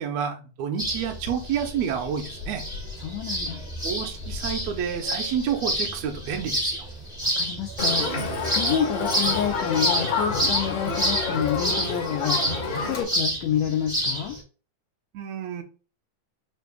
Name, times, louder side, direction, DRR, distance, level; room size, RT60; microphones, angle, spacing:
voice 1, 0.0-2.6 3.8-6.8 15.1-15.6, right 8 dB, 70° right, 5 dB, 1.7 m, -29 dB
sound 1, 0.8-14.4, equal, 5° right, 0.4 m, -29 dB
voice 2, 3.0-3.6 7.2-14.4, left 9 dB, 85° left, 3 dB, 1.6 m, -29 dB
Crowd, 7.8-13.0, left 4 dB, 50° left, 1.6 m, -29 dB
6.7 x 2.7 x 2.2 m, 0.35 s
omnidirectional pair, 3.7 m